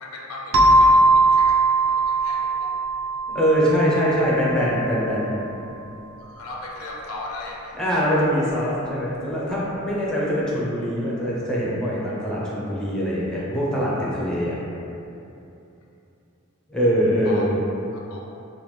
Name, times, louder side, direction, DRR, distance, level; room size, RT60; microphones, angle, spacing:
voice 1, 0.0-2.7 6.2-7.8 17.2-17.5 17.9-18.3, left 2 dB, 70° left, -2 dB, 0.4 m, -37 dB
sound 1, 0.5-4.9, right 2 dB, 65° right, 0.4 m, -19 dB
voice 2, 3.3-5.3 7.8-14.6 16.7-17.6, equal, 5° left, -7 dB, 0.4 m, -23 dB
2.9 x 2.1 x 3.2 m, 2.8 s
head